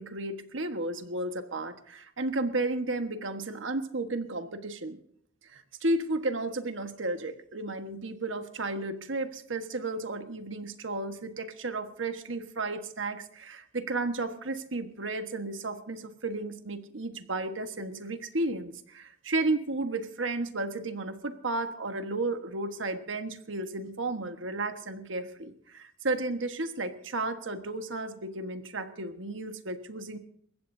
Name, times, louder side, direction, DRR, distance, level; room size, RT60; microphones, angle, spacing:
voice 1, 0.0-5.0 5.5-30.2, right 2 dB, 75° right, 7 dB, 1.4 m, -33 dB
29.0 x 15.0 x 2.7 m, 0.66 s
head